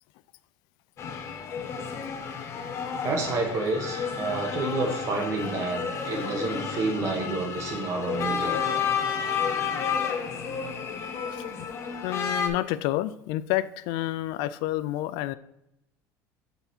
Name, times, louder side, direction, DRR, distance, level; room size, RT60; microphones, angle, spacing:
sound 1, 1.0-12.5, left 6 dB, 35° left, 0.8 m, -31 dB
voice 1, 3.0-8.6, right 3 dB, 40° right, 2 dB, 1.6 m, -29 dB
voice 2, 11.3-11.7 12.0-15.4, left 15 dB, 70° left, 16 dB, 0.4 m, -29 dB
8.0 x 4.1 x 4.4 m, 0.81 s
cardioid pair, 145°, 8 cm